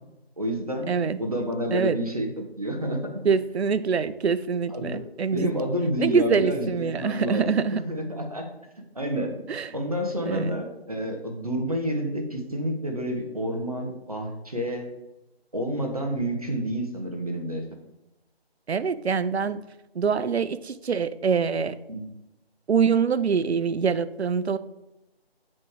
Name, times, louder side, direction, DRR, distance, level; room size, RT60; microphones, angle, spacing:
voice 1, 0.4-0.9 1.2-3.0 4.7-5.0 5.3-8.4 8.9-9.3 9.7-14.9 15.5-17.6 21.9-22.0, equal, 35° right, 2 dB, 0.8 m, -29 dB
voice 2, 0.9-1.2 1.7-2.0 3.2-5.6 6.0-7.8 9.5-9.7 10.2-10.6 18.7-19.6 19.9-21.8 22.7-24.6, right 6 dB, 85° right, 15 dB, 0.5 m, -24 dB
7.4 x 3.1 x 4.8 m, 0.93 s
figure-of-eight pair, 170°, 32 cm